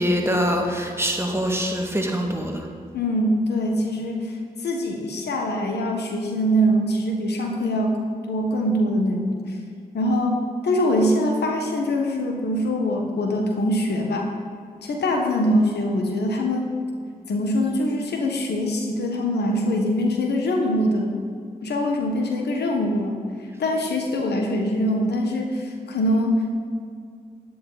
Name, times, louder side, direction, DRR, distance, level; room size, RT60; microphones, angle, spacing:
voice 1, 0.0-2.7, equal, 15° right, 1 dB, 2.0 m, -24 dB
voice 2, 2.9-4.4 4.6-8.0 8.3-9.5 9.9-14.3 14.8-16.8 17.3-21.2 21.6-23.2 23.6-26.6, equal, 90° left, 2 dB, 1.3 m, -23 dB
10.5 x 9.4 x 4.1 m, 2.2 s
cardioid pair, 40°, 17 cm